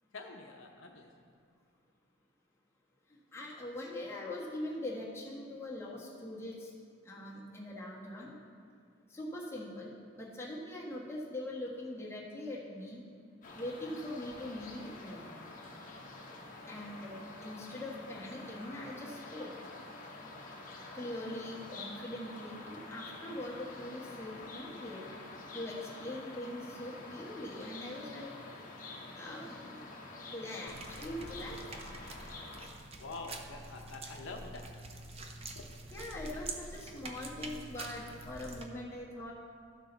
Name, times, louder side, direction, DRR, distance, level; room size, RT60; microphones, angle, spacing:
voice 1, 0.1-1.1 33.0-34.7 35.5-35.7, left 3 dB, 70° left, 2 dB, 0.7 m, -46 dB
voice 2, 3.3-6.7 7.0-8.3 9.1-9.9 10.2-13.0 13.5-15.3 16.7-19.5 20.9-25.1 25.5-28.3 29.2-29.8 30.2-31.6 35.9-39.3, left 1 dB, 10° left, -6 dB, 1.4 m, -42 dB
sound 1, 13.4-32.7, left 2 dB, 40° left, 1.0 m, -48 dB
sound 2, 30.7-38.6, right 2 dB, 30° right, 0.5 m, -46 dB
13.0 x 6.2 x 4.0 m, 2.3 s
head